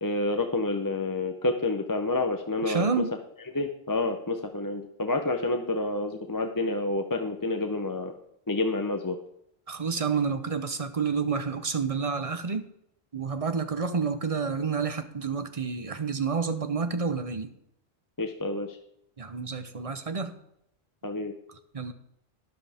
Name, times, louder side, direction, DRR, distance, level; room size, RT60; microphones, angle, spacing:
voice 1, 0.0-2.9 3.5-8.1 8.5-9.2 18.2-18.8 21.0-21.3, left 2 dB, 20° left, 0.7 m, -28 dB
voice 2, 2.7-3.1 9.7-12.6 13.1-17.5 19.2-20.3 21.7-21.9, right 5 dB, 35° right, 0.9 m, -29 dB
13.0 x 10.5 x 3.5 m
omnidirectional pair, 1.1 m